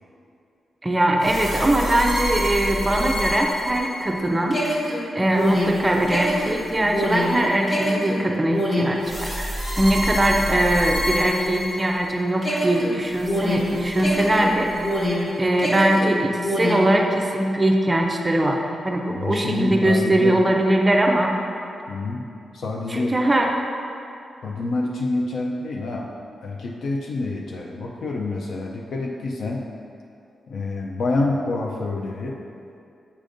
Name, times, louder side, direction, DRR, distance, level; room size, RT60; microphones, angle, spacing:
voice 1, 0.8-4.6 5.1-14.7 15.4-21.3 22.9-23.5, right 1 dB, 15° right, 1 dB, 0.4 m, -21 dB
sound 1, 1.2-12.1 12.4-15.3 15.6-16.9, equal, 25° left, 1.5 m, -26 dB
voice 2, 19.1-20.4 21.9-22.2 22.5-23.2 24.4-26.1 26.4-29.6 30.5-32.4, left 2 dB, 65° left, -1 dB, 0.4 m, -27 dB
8.3 x 5.1 x 2.5 m, 2.6 s
wide cardioid pair, 170°, 0 cm